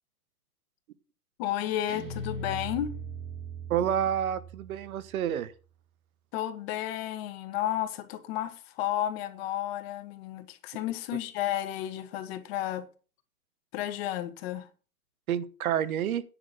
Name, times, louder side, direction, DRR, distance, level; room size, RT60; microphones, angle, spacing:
voice 1, 1.4-2.9 6.3-12.9 13.7-14.7, left 12 dB, 40° left, 1.5 m, -32 dB
Guitar, 1.9-5.1, right 2 dB, 30° right, 4.2 m, -39 dB
voice 2, 3.7-5.5 15.3-16.2, right 9 dB, 65° right, 1.1 m, -29 dB
10.0 x 6.1 x 6.7 m
hypercardioid pair, 145°, 45 cm